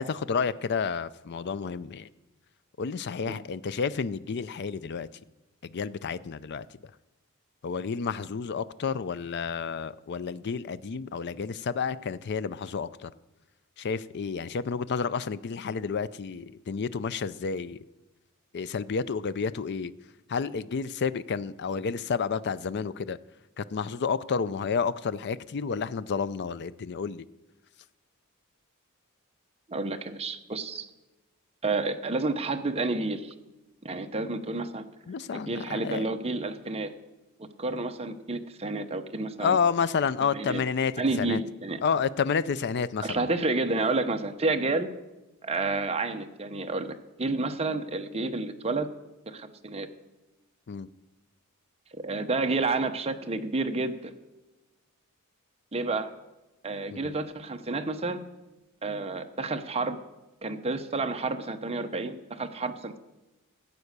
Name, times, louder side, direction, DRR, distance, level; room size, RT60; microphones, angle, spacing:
voice 1, 0.0-2.1 2.8-5.1 5.7-6.7 7.6-13.1 13.8-17.8 18.5-19.9 20.3-23.2 23.6-27.2 35.1-36.1 39.4-41.4 41.8-43.2 50.7-50.9 56.9-57.1, left 5 dB, 50° left, 0.4 m, -30 dB
voice 2, 29.7-30.9 31.6-33.3 33.8-34.9 35.3-36.9 37.4-39.6 40.3-40.6 41.0-41.8 43.0-44.9 45.4-48.9 49.3-49.9 51.9-54.2 55.7-56.1 56.6-58.2 58.8-60.0 60.4-63.0, right 3 dB, 30° right, 0.8 m, -30 dB
14.5 x 8.3 x 6.7 m
head